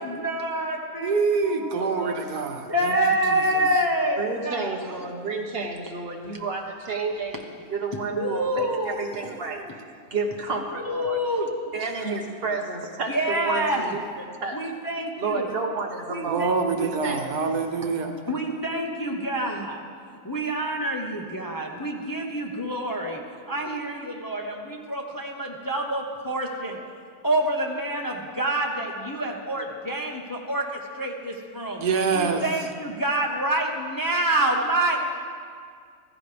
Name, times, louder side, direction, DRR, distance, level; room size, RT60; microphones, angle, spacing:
voice 1, 0.0-1.1 1.4-2.3 2.7-5.0 8.2-9.0 10.7-11.5 12.0-12.1 13.1-14.0 14.5-15.5 16.1-16.5 18.3-19.8 20.2-23.2 23.5-26.8 27.2-31.8 32.1-35.0, right 1 dB, 15° left, 0 dB, 0.8 m, -27 dB
voice 2, 1.0-2.9 3.3-3.7 16.3-18.2 31.8-32.4, right 4 dB, 90° right, 5 dB, 1.5 m, -25 dB
voice 3, 4.2-7.4 7.7-9.7 10.1-11.2 11.7-14.0 14.4-14.6 15.2-17.2, right 4 dB, 40° right, 2 dB, 1.3 m, -30 dB
15.5 x 14.5 x 3.4 m, 2.1 s
omnidirectional pair, 1.6 m